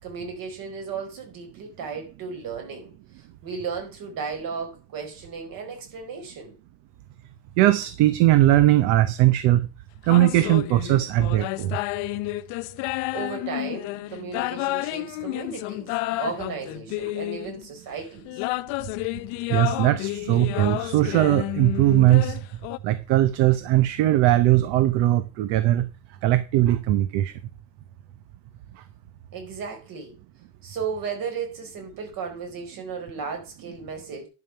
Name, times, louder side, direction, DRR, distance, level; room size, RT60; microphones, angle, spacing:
voice 1, 0.0-6.5 13.1-18.4 29.3-30.2 30.6-34.3, right 5 dB, 50° right, 3 dB, 4.6 m, -35 dB
voice 2, 7.6-9.7 10.1-11.8 19.5-22.4 22.8-25.9 26.2-27.3, right 14 dB, 65° right, 12 dB, 1.0 m, -19 dB
sound 1, 10.1-17.7 18.2-22.8, left 19 dB, 80° left, 0.7 m, -30 dB
11.0 x 5.9 x 5.7 m, 0.32 s
cardioid pair, 160°, 44 cm